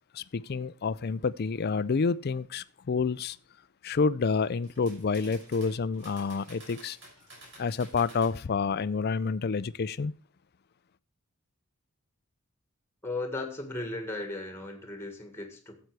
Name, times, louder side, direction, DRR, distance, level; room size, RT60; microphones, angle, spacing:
voice 1, 0.1-3.4 3.8-7.0 7.6-10.1, left 5 dB, 45° left, 0.4 m, -29 dB
sound 1, 4.4-8.3, right 1 dB, 55° right, 6.3 m, -51 dB
voice 2, 13.0-15.8, left 2 dB, 10° left, 1.7 m, -36 dB
13.0 x 8.0 x 4.7 m
head